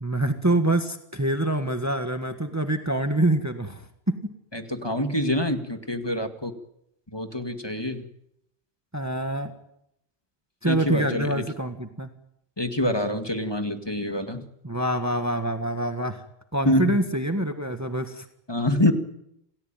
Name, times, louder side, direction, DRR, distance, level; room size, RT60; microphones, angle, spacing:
voice 1, 0.0-4.1 8.9-9.5 10.6-12.1 14.6-16.2 16.5-18.3, right 1 dB, 15° right, 7 dB, 1.6 m, -25 dB
voice 2, 4.5-6.5 7.1-8.0 10.6-11.4 12.6-14.4 16.7-17.0 18.5-18.9, left 1 dB, 25° left, 6 dB, 2.1 m, -26 dB
28.5 x 18.0 x 9.1 m, 0.79 s
omnidirectional pair, 1.1 m